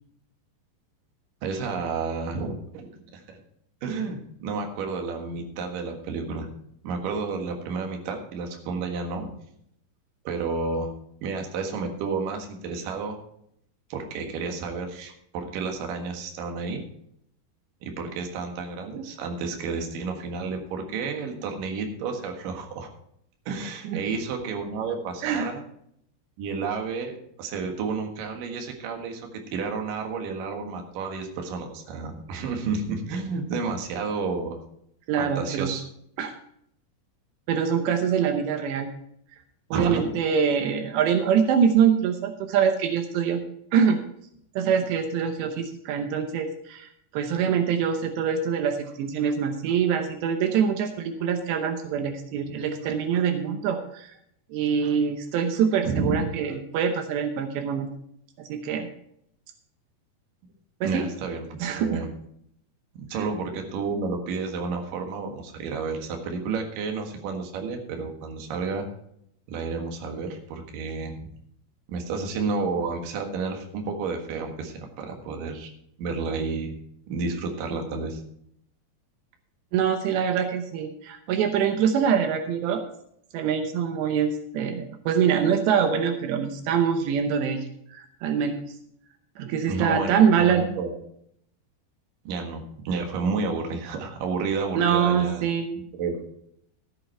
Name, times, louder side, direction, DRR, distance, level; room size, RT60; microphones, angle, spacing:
voice 1, 1.4-3.2 3.8-6.5 6.8-9.3 10.2-10.9 11.2-13.2 13.9-16.8 17.8-22.9 23.5-25.6 26.4-34.6 35.2-35.8 39.7-40.0 55.8-56.3 60.8-62.1 62.9-68.9 69.5-71.3 71.9-75.7 76.0-76.7 77.1-78.2 89.7-91.0 92.2-95.5 96.0-96.1, right 4 dB, 60° right, 3 dB, 2.9 m, -31 dB
voice 2, 35.1-35.7 36.2-36.3 37.5-38.9 39.7-43.4 43.7-44.0 44.6-54.1 54.5-57.9 58.4-58.9 60.8-61.0 61.6-62.0 63.1-63.3 79.7-82.8 83.3-88.6 89.4-90.6 94.7-95.7, right 7 dB, 80° right, 6 dB, 3.1 m, -24 dB
14.5 x 8.0 x 4.5 m, 0.71 s
omnidirectional pair, 5.0 m